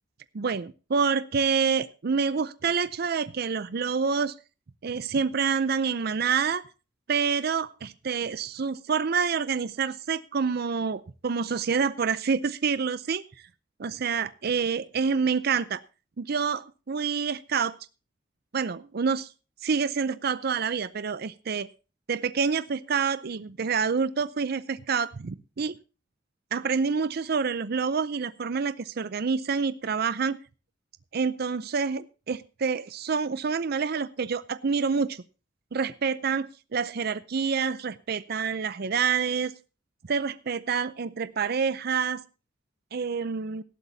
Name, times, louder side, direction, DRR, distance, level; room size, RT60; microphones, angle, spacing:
voice 1, 0.3-4.3 4.8-6.6 7.1-13.2 13.8-15.8 16.2-17.8 18.5-19.3 19.6-21.7 22.1-25.8 26.5-30.4 31.1-35.2 35.7-39.5 40.1-42.2 42.9-43.6, right 5 dB, 55° right, 15 dB, 0.5 m, -27 dB
18.5 x 12.0 x 2.7 m, 0.33 s
head